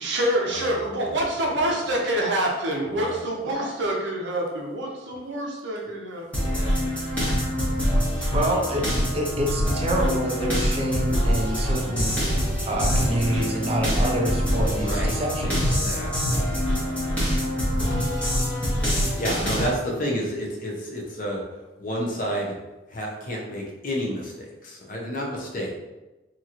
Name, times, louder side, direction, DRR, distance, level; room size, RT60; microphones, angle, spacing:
voice 1, 0.0-6.5 7.1-7.2, right 1 dB, 65° right, -1 dB, 0.6 m, -26 dB
voice 2, 0.5-1.2 2.9-3.2 6.5-6.8 14.7-15.1 15.4-17.6 19.2-21.4 21.8-22.6 22.9-25.7, equal, 45° left, -1 dB, 0.6 m, -31 dB
sound 1, 6.3-19.7, equal, 5° left, 1.0 m, -24 dB
voice 3, 8.3-8.9 9.1-12.2 12.7-15.8, right 1 dB, 30° right, 0 dB, 0.4 m, -27 dB
2.9 x 2.8 x 2.4 m, 1.1 s
head